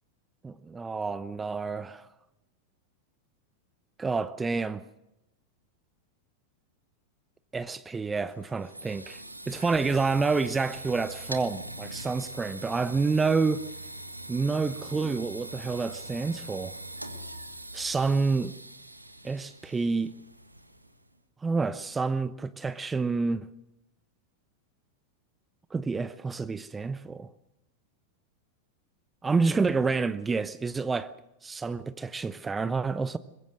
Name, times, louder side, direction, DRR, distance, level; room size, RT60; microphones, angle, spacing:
voice 1, 0.4-2.1 4.0-4.8 7.5-13.7 14.3-16.8 17.7-18.6 19.2-20.1 21.4-23.5 25.7-27.3 29.2-31.1 31.4-33.2, right 4 dB, 15° right, 0.8 m, -28 dB
sound 1, 8.3-21.1, right 1 dB, 85° right, 1.6 m, -42 dB
23.5 x 21.5 x 6.4 m
figure-of-eight pair, 90°, 0 cm